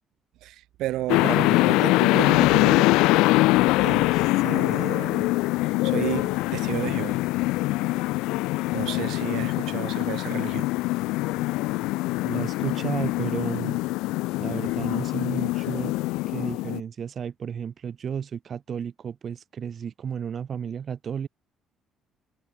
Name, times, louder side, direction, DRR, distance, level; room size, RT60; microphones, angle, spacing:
voice 1, 0.4-2.9 3.8-5.3 5.8-7.2 8.7-10.7, right 15 dB, 70° right, 1.5 m, -32 dB
sound 1, 1.1-16.8, left 20 dB, 75° left, 0.3 m, -23 dB
voice 2, 12.2-13.8 14.4-15.9 16.3-21.3, right 7 dB, 50° right, 1.6 m, -33 dB
hypercardioid pair, 50°, 0 cm